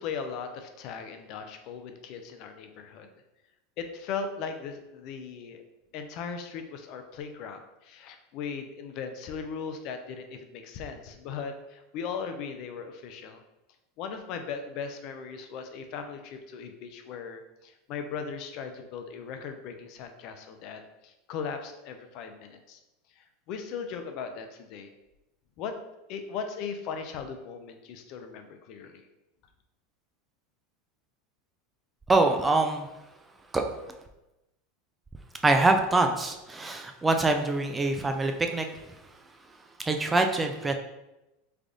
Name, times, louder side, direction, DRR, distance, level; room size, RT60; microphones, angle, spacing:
voice 1, 0.0-3.1 3.8-5.6 5.9-13.4 14.0-22.8 23.2-24.9 25.6-25.7 26.1-29.0, left 6 dB, 55° left, 7 dB, 0.4 m, -38 dB
voice 2, 32.1-32.9 33.5-33.6 35.4-38.7 39.9-40.7, right 2 dB, 15° right, 4 dB, 0.3 m, -24 dB
3.3 x 2.5 x 3.6 m, 0.95 s
supercardioid pair, 125°, 0 cm